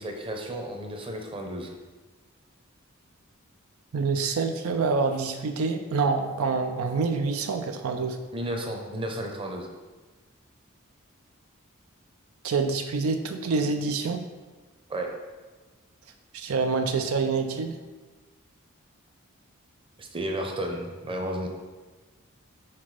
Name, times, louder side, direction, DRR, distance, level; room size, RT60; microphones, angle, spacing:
voice 1, 0.0-1.7 8.3-9.7 14.9-15.1 20.0-21.5, right 1 dB, 25° right, 2 dB, 0.8 m, -33 dB
voice 2, 3.9-8.2 12.4-14.2 16.3-17.8, right 4 dB, 80° right, 6 dB, 0.5 m, -26 dB
5.9 x 4.2 x 4.8 m, 1.3 s
head